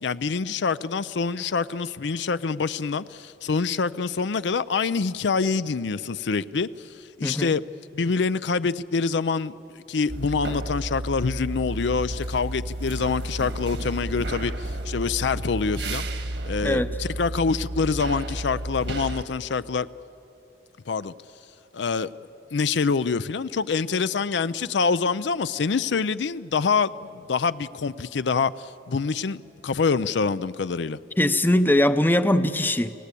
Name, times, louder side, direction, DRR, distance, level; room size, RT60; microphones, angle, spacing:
voice 1, 0.0-7.6 7.9-16.1 16.5-19.9 20.9-21.1 21.7-22.1 22.5-31.0, left 5 dB, 70° left, 15 dB, 0.5 m, -26 dB
voice 2, 7.2-7.5 16.6-16.9 31.2-33.0, left 1 dB, 10° left, 11 dB, 0.6 m, -21 dB
sound 1, 10.1-19.2, right 1 dB, 70° right, 1.7 m, -32 dB
29.0 x 18.5 x 8.4 m, 2.9 s
head